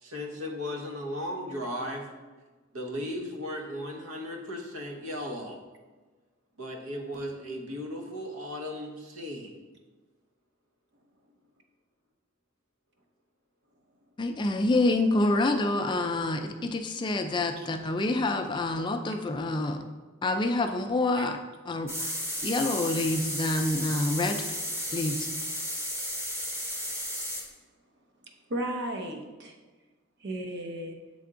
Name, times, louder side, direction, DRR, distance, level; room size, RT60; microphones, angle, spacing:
voice 1, 0.0-2.1 2.7-5.6 6.6-9.5, left 1 dB, 85° right, 2 dB, 1.0 m, -36 dB
voice 2, 14.2-19.8 20.2-21.4 21.7-24.4 24.9-25.3, left 2 dB, 20° left, 6 dB, 0.3 m, -27 dB
sound 1, 21.9-27.4, equal, 10° right, 0.8 m, -33 dB
voice 3, 28.5-29.6 30.2-31.0, right 1 dB, 60° right, 3 dB, 0.8 m, -34 dB
7.6 x 3.4 x 3.7 m, 1.3 s
head